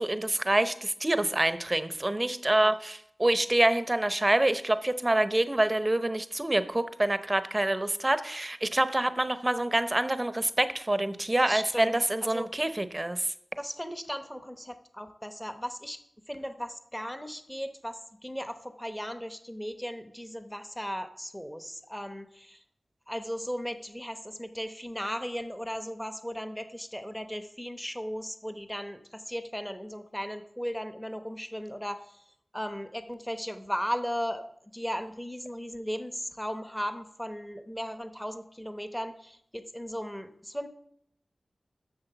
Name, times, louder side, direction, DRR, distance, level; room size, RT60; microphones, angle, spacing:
voice 1, 0.0-13.3, right 1 dB, 25° right, 12 dB, 0.6 m, -26 dB
voice 2, 11.4-12.5 13.6-16.0 16.3-22.6 23.1-32.2 32.5-34.4 34.7-40.7, equal, 5° left, 9 dB, 0.9 m, -36 dB
7.9 x 6.6 x 6.7 m, 0.72 s
wide cardioid pair, 85°, 0 cm